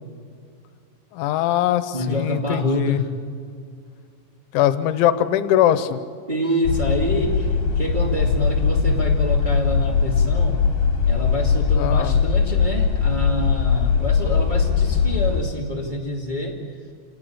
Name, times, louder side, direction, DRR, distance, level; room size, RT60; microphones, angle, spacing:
voice 1, 1.1-3.0 4.5-6.0 11.8-12.2, left 11 dB, 85° left, 13 dB, 3.3 m, -21 dB
voice 2, 1.9-3.1 6.3-10.6 11.0-16.6, left 1 dB, 35° right, -1 dB, 0.7 m, -26 dB
sound 1, 6.7-15.4, left 6 dB, 70° left, 4.1 m, -20 dB
27.5 x 18.5 x 8.7 m, 2.2 s
omnidirectional pair, 5.4 m